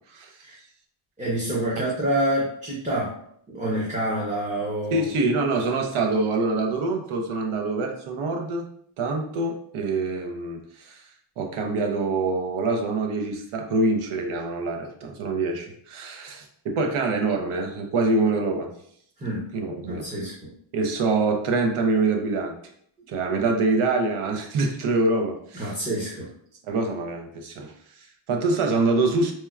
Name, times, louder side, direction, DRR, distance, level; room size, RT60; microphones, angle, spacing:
voice 1, 1.2-3.1 3.5-5.1 19.2-19.5 19.9-20.5 25.5-26.3, right 1 dB, 15° right, -7 dB, 0.5 m, -27 dB
voice 2, 4.9-8.7 9.0-11.0 11.4-18.7 19.5-20.1 20.7-22.5 23.1-25.7 26.6-29.3, right 3 dB, 80° right, 2 dB, 0.7 m, -25 dB
4.4 x 2.1 x 2.3 m, 0.66 s
wide cardioid pair, 175°, 49 cm